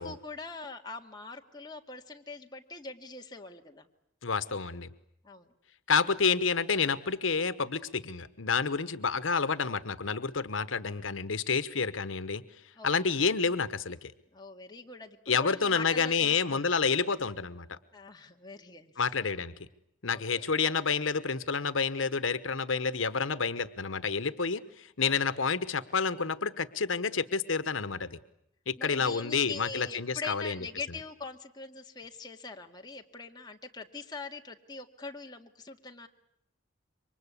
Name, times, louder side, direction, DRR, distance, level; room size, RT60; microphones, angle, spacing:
voice 1, 0.0-3.9 5.2-5.5 12.8-13.1 14.3-16.6 17.9-19.1 20.1-20.5 25.0-25.2 28.8-36.1, left 4 dB, 20° left, 2 dB, 2.0 m, -43 dB
voice 2, 4.2-4.9 5.9-12.4 12.8-14.1 15.3-17.8 19.0-19.5 20.0-28.2 28.7-30.6, left 5 dB, 90° left, 13 dB, 1.1 m, -29 dB
27.5 x 24.0 x 8.4 m, 0.77 s
head